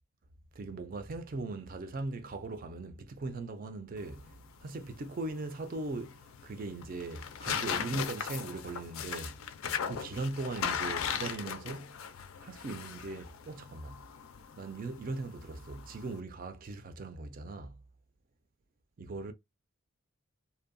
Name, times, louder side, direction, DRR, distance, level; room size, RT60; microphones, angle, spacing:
voice 1, 0.6-4.3 4.6-9.4 9.8-11.9 12.4-14.0 14.6-17.8 19.0-19.3, right 2 dB, 40° right, 0.4 m, -39 dB
sound 1, 4.0-16.2, left 7 dB, 65° left, 0.4 m, -39 dB
2.6 x 2.1 x 2.5 m
head